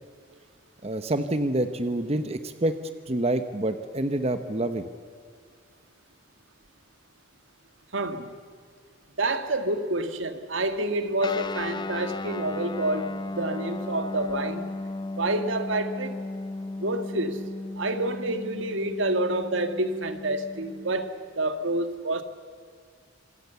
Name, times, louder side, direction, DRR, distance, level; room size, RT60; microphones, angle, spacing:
voice 1, 0.8-2.7 3.1-4.9, right 1 dB, 30° right, 1.0 m, -27 dB
voice 2, 7.9-8.3 9.2-14.7 15.2-16.2 16.8-17.4 17.8-22.2, right 2 dB, 80° right, 1.8 m, -28 dB
Guitar, 11.2-21.1, left 2 dB, 25° left, 0.6 m, -35 dB
26.5 x 26.5 x 7.0 m
head